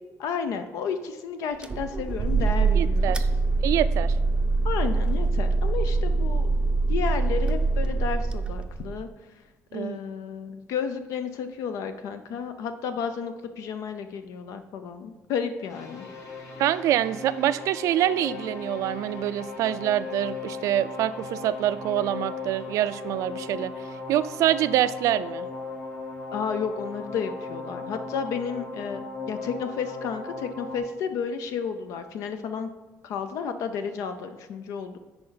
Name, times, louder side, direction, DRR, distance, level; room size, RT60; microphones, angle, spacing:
voice 1, 0.2-3.1 4.6-6.5 6.9-9.1 9.7-16.1 26.3-29.0 29.3-32.7 33.0-35.0, left 6 dB, 80° left, 8 dB, 0.6 m, -32 dB
sound 1, 1.6-9.0, right 3 dB, 15° right, 0.5 m, -24 dB
voice 2, 2.7-3.3 3.6-4.1 9.7-10.0 16.6-23.7 24.1-25.5, right 12 dB, 75° right, 14 dB, 0.4 m, -25 dB
sound 2, 15.7-30.8, left 4 dB, 65° left, 1.7 m, -37 dB
10.5 x 4.4 x 3.9 m, 1.3 s
cardioid pair, 135°, 5 cm